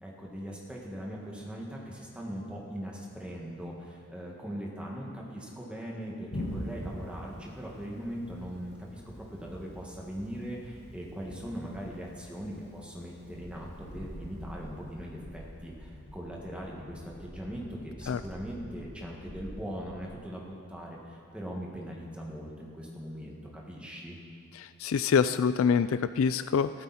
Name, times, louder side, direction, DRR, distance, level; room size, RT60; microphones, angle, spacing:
voice 1, 0.0-24.2, equal, 5° right, -3 dB, 1.8 m, -40 dB
Thunder, 6.3-15.7, equal, 50° left, 2.4 m, -44 dB
Train, 13.2-20.0, equal, 85° left, 2.3 m, -47 dB
voice 2, 24.5-26.8, left 6 dB, 65° left, 13 dB, 0.3 m, -26 dB
15.0 x 13.0 x 4.3 m, 2.5 s
head